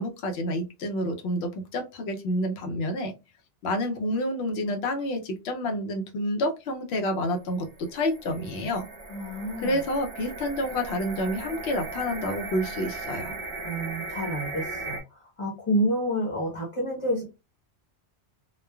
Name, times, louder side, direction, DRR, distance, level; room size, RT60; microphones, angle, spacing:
voice 1, 0.0-3.1 3.6-8.8 9.6-13.4, left 1 dB, 65° left, 4 dB, 0.8 m, -29 dB
sound 1, 7.6-15.0, right 3 dB, 45° right, 1.0 m, -37 dB
voice 2, 9.1-9.8 13.6-17.2, equal, 30° left, -4 dB, 0.8 m, -29 dB
3.1 x 2.2 x 2.2 m, 0.27 s
omnidirectional pair, 1.2 m